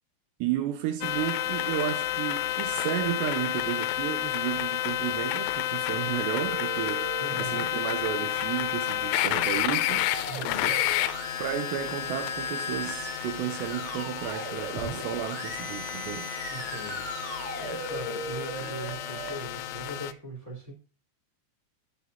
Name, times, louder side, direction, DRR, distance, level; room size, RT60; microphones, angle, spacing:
voice 1, 0.4-7.1 7.3-10.1 11.4-16.3, right 11 dB, 75° right, 2.6 m, -33 dB
sound 1, 1.0-20.1, left 14 dB, 85° left, 3.0 m, -31 dB
sound 2, 6.3-19.3, right 1 dB, 30° right, 4.3 m, -38 dB
voice 2, 7.2-7.7 10.3-10.9 16.5-20.7, equal, 15° right, 4.3 m, -40 dB
8.9 x 8.2 x 4.3 m
omnidirectional pair, 5.6 m